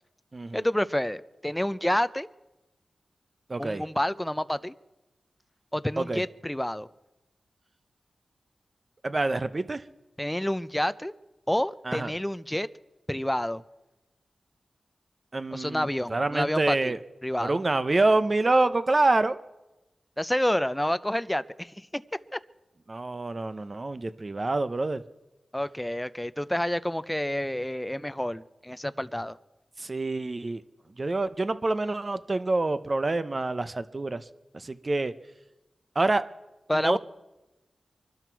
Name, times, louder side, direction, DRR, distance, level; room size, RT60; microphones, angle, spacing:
voice 1, 0.5-2.3 3.6-4.7 5.7-6.9 10.2-11.1 11.5-12.7 13.1-13.6 15.5-16.9 17.2-17.6 20.2-22.0 22.3-22.4 25.5-29.4 36.7-37.0, left 1 dB, 10° left, 14 dB, 0.5 m, -29 dB
voice 2, 3.5-3.8 6.0-6.2 9.0-9.8 11.9-12.1 15.3-17.0 17.4-19.4 22.9-25.0 29.8-30.6 31.0-34.2 34.5-35.1 36.0-36.2 36.8-37.0, right 2 dB, 40° right, 12 dB, 0.7 m, -26 dB
24.0 x 12.0 x 4.6 m, 1.0 s
cardioid pair, 65°, 0 cm